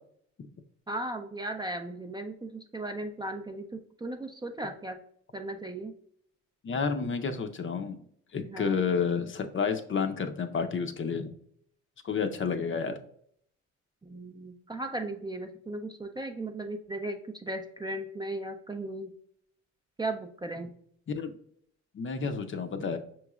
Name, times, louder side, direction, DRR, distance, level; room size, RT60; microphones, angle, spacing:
voice 1, 0.9-5.0 5.3-5.9 8.4-8.7 14.0-19.1 20.0-20.7, right 2 dB, 15° right, 5 dB, 0.4 m, -36 dB
voice 2, 6.6-8.0 8.3-11.3 12.0-13.0 21.1-21.3 21.9-23.0, left 5 dB, 40° left, 8 dB, 0.6 m, -30 dB
5.8 x 3.0 x 2.3 m, 0.66 s
cardioid pair, 90°, 30 cm